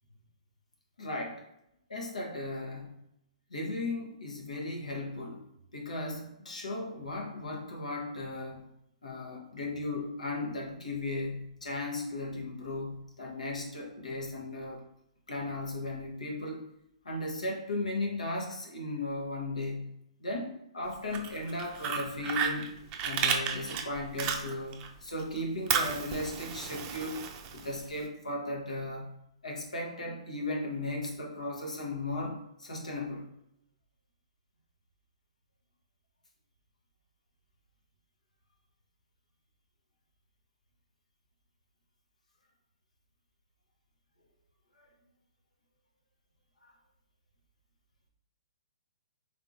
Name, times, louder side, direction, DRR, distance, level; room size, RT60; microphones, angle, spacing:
voice 1, 1.0-1.4 1.9-3.0 3.5-5.4 5.7-8.7 9.0-14.8 15.3-16.7 17.0-19.9 20.2-22.7 23.0-27.2 27.5-29.1 29.4-33.3 44.8-44.9 46.6-46.7, left 2 dB, 85° left, -1 dB, 1.0 m, -36 dB
Fire, 20.9-24.9 25.2-28.0, right 7 dB, 30° right, 0.5 m, -33 dB
3.6 x 3.5 x 2.6 m, 0.80 s
hypercardioid pair, 130°, 4 cm